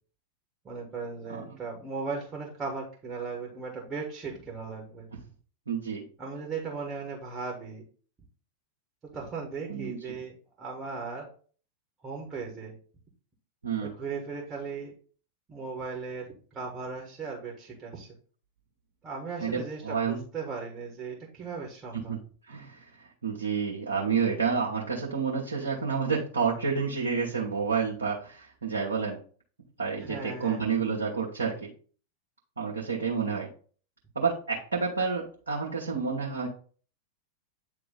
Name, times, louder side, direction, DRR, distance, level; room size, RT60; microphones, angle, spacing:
voice 1, 0.6-5.1 6.2-7.8 9.1-11.3 12.0-12.7 13.8-14.9 15.5-18.1 19.0-22.1 30.0-30.6, right 4 dB, 20° right, 0 dB, 1.6 m, -37 dB
voice 2, 5.7-6.0 9.7-10.2 13.6-13.9 19.4-20.2 21.9-22.2 22.5-29.2 29.8-31.7 32.6-33.5 34.1-36.5, right 5 dB, 75° right, -4 dB, 1.2 m, -29 dB
8.9 x 3.0 x 4.0 m, 0.43 s
figure-of-eight pair, 90°, 0 cm